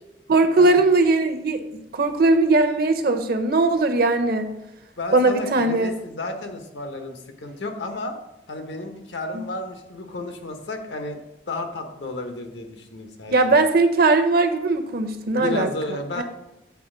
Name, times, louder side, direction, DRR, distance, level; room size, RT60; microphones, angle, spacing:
voice 1, 0.3-1.6 1.9-4.5 5.1-6.0 9.3-9.4 13.3-15.7 16.2-16.3, right 3 dB, 60° right, 8 dB, 0.7 m, -19 dB
voice 2, 5.0-8.2 8.5-11.2 11.5-13.5 15.3-16.2, left 2 dB, 85° left, 5 dB, 1.0 m, -32 dB
8.5 x 4.0 x 3.8 m, 0.90 s
head